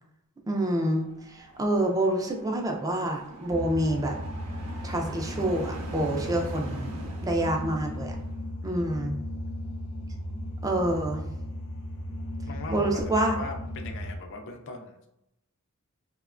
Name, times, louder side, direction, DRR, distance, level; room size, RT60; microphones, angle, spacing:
voice 1, 0.5-4.1 4.8-8.2 8.6-9.2 10.6-11.2 12.7-13.3, right 1 dB, 15° right, 1 dB, 0.3 m, -27 dB
sound 1, 1.0-8.4, right 2 dB, 85° right, 0.6 m, -44 dB
sound 2, 3.5-14.2, equal, 85° left, 0.8 m, -36 dB
voice 2, 8.6-9.1 12.5-15.0, left 3 dB, 55° left, 4 dB, 0.4 m, -40 dB
2.8 x 2.1 x 2.4 m, 0.85 s
head